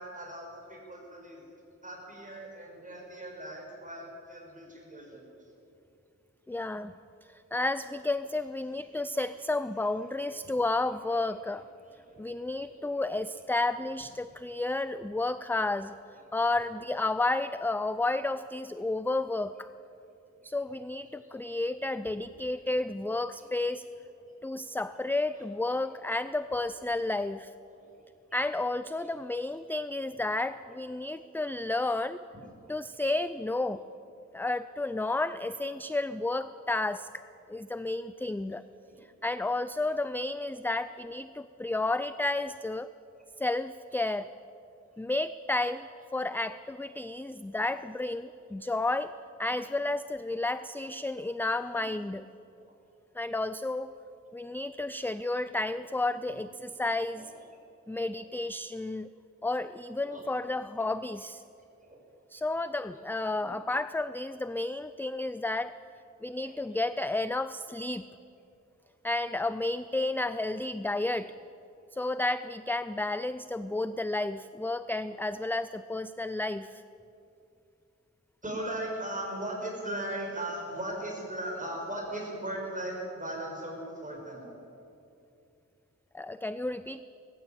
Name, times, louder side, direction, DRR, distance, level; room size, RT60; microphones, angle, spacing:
voice 1, 0.0-1.5 1.8-5.3 8.7-9.0 10.4-10.5 11.8-12.7 21.3-21.7 22.1-22.2 22.5-22.6 23.4-23.5 24.5-24.6 25.3-25.4 27.7-27.9 29.0-29.1 31.6-31.8 32.6-32.7 34.3-34.4 38.8-39.0 39.9-40.0 47.3-47.4 49.5-49.6 51.7-51.9 52.6-52.7 55.3-55.6 56.3-56.4 57.1-57.3 57.9-58.1 60.0-60.4 61.8-62.0 63.4-63.6 66.4-66.6 78.4-84.5, right 1 dB, 25° right, -1 dB, 6.4 m, -39 dB
voice 2, 6.5-6.9 7.3-11.6 12.2-16.0 16.3-19.7 20.4-23.9 24.4-27.5 28.3-32.2 32.7-33.8 34.3-37.1 37.5-38.6 39.2-42.9 43.4-44.3 45.0-45.9 46.1-49.1 49.4-52.2 53.1-53.9 54.3-57.3 57.9-59.1 59.4-61.4 62.3-65.7 66.2-68.1 69.0-71.3 71.9-76.8 86.1-87.0, left 2 dB, 5° left, 13 dB, 0.4 m, -31 dB
20.5 x 14.5 x 8.7 m, 2.7 s
wide cardioid pair, 95°, 29 cm